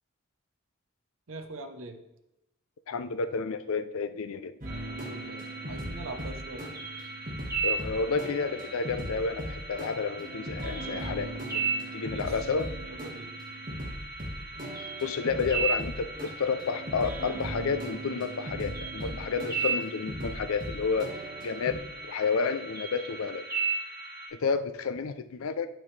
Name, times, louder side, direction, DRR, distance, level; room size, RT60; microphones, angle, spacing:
voice 1, 1.3-2.0 4.9-6.7 12.0-12.4 12.8-13.3 19.2-19.6, right 2 dB, 65° right, 6 dB, 0.7 m, -43 dB
voice 2, 2.9-4.5 7.6-11.3 11.9-12.8 15.0-21.2 21.4-23.4 24.3-25.7, left 5 dB, 75° left, 11 dB, 0.5 m, -30 dB
sound 1, 4.6-24.3, right 4 dB, 15° right, 1.7 m, -37 dB
sound 2, 4.6-21.8, right 1 dB, 40° right, 1.6 m, -39 dB
8.7 x 5.9 x 3.3 m, 0.91 s
head